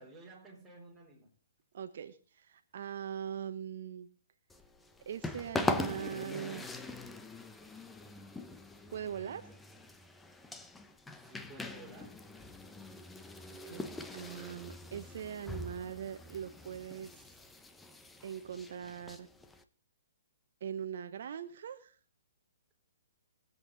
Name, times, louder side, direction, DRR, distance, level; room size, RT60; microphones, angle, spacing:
voice 1, 0.0-1.3 11.1-12.3, right 2 dB, 10° right, 4.1 m, -53 dB
voice 2, 1.7-4.1 5.0-6.7 8.9-9.5 13.7-17.3 18.2-19.3 20.6-22.0, right 8 dB, 60° right, 1.1 m, -41 dB
sound 1, 4.5-19.6, left 2 dB, 5° left, 1.0 m, -42 dB
22.5 x 8.2 x 4.0 m
hypercardioid pair, 140°, 0 cm